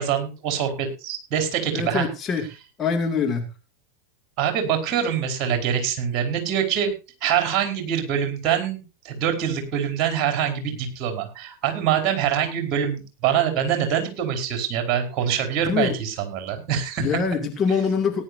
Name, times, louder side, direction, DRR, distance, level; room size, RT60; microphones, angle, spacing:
voice 1, 0.0-2.1 4.4-6.9 7.2-17.1, right 9 dB, 40° right, 5 dB, 4.7 m, -24 dB
voice 2, 1.7-2.5 2.8-3.4 15.7-16.0 17.0-18.2, left 5 dB, 25° left, 4 dB, 2.4 m, -24 dB
18.5 x 11.0 x 2.6 m, 0.31 s
figure-of-eight pair, 90°, 0 cm